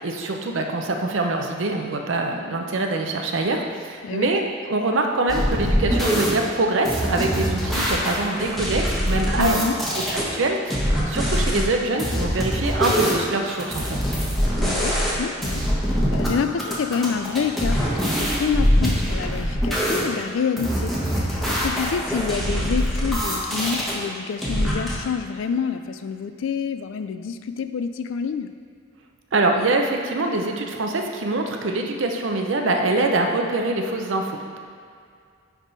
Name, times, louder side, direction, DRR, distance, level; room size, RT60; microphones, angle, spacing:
voice 1, 0.0-9.6 9.9-14.0 29.3-34.3, right 2 dB, 70° right, 3 dB, 0.7 m, -24 dB
sound 1, 5.3-6.3 6.8-10.2 10.7-11.6 12.0-15.2 15.4-16.3 16.6-20.0 20.6-23.9 24.4-24.9, equal, ahead, 1.2 m, -23 dB
voice 2, 9.4-9.8 14.6-28.5, left 6 dB, 75° left, 10 dB, 0.4 m, -28 dB
10.0 x 3.6 x 4.0 m, 2.3 s
head